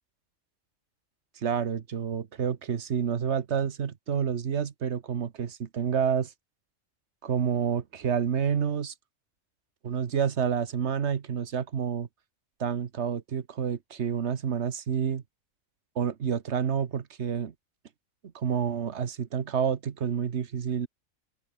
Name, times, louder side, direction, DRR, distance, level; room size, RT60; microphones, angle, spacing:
voice 1, 1.4-6.3 7.2-8.9 9.8-12.1 12.6-15.2 15.9-17.5 18.3-20.9, right 7 dB, 55° right, 1.4 m, -29 dB
omnidirectional pair, 1.4 m